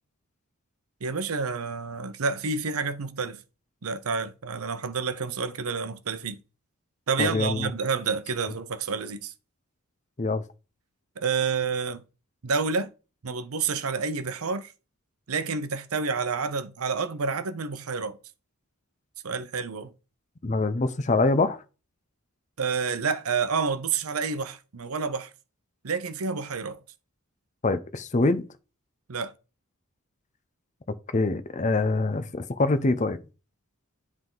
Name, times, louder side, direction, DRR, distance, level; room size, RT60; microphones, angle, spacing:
voice 1, 1.0-3.4 3.8-6.4 7.1-9.3 11.2-12.0 12.4-12.9 13.2-14.7 15.3-18.2 19.2-19.9 22.6-25.3 25.8-26.8 29.1-29.3, right 5 dB, 80° right, 0.7 m, -29 dB
voice 2, 7.2-7.7 10.2-10.4 20.4-21.6 27.6-28.4 31.1-33.2, left 3 dB, 35° left, 0.6 m, -24 dB
10.0 x 3.7 x 3.8 m
head